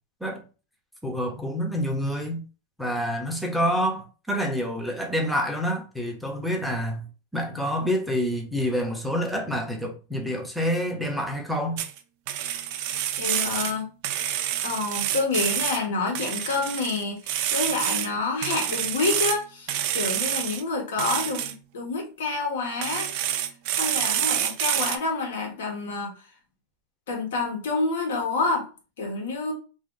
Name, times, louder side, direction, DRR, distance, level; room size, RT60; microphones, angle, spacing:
voice 1, 1.0-2.4 2.8-7.1 7.3-11.8, equal, ahead, 0.8 m, -27 dB
sound 1, 11.8-12.0 12.3-13.7 14.0-15.8 16.1-18.1 18.4-19.4 19.7-20.6 21.0-21.5 22.8-25.0, right 11 dB, 60° right, 0.4 m, -27 dB
voice 2, 13.2-13.9 14.6-23.5 23.7-26.1 27.1-28.7 29.0-29.5, left 3 dB, 80° left, 1.2 m, -28 dB
2.6 x 2.4 x 3.8 m
hypercardioid pair, 110°, 0 cm